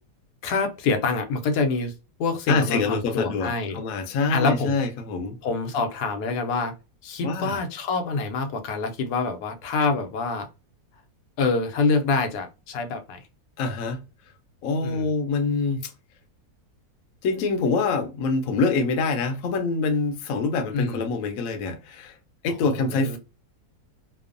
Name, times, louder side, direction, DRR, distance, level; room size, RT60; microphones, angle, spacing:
voice 1, 0.4-1.9 2.2-3.8 4.3-4.8 5.4-6.7 7.0-10.5 11.4-13.3 14.8-15.1 20.7-21.0 22.6-23.2, left 4 dB, 90° left, 1.1 m, -26 dB
voice 2, 2.5-5.4 7.2-7.6 13.6-14.0 14.6-15.9 17.2-22.2 22.4-23.2, left 4 dB, 70° left, 0.9 m, -25 dB
2.9 x 2.0 x 2.4 m
omnidirectional pair, 1.6 m